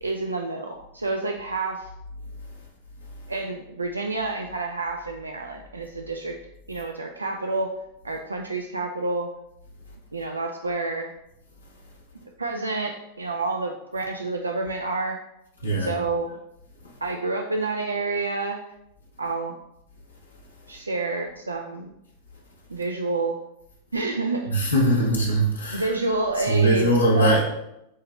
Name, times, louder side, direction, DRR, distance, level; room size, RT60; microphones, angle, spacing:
voice 1, 0.0-1.9 3.3-6.4 6.7-7.7 8.0-9.3 10.1-11.1 12.4-15.2 15.8-16.3 17.0-18.6 19.2-19.6 20.7-21.9 22.7-23.4 23.9-24.7 25.7-26.9 27.1-27.4, right 3 dB, 80° right, 2 dB, 0.3 m, -28 dB
voice 2, 24.5-25.9 26.5-27.4, right 1 dB, 80° left, -4 dB, 0.9 m, -21 dB
8.2 x 2.9 x 2.2 m, 0.84 s
figure-of-eight pair, 90°, 0 cm